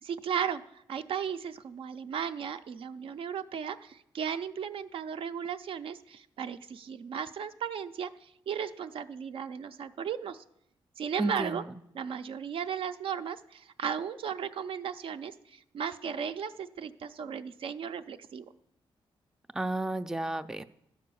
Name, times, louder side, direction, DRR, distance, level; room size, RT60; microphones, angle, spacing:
voice 1, 0.0-10.4 11.0-11.6 11.9-18.4, right 7 dB, 70° right, 10 dB, 0.5 m, -36 dB
voice 2, 11.2-11.8 19.5-20.6, right 2 dB, 5° right, 10 dB, 0.3 m, -32 dB
12.5 x 4.9 x 6.9 m, 0.78 s
cardioid pair, 110°, 9 cm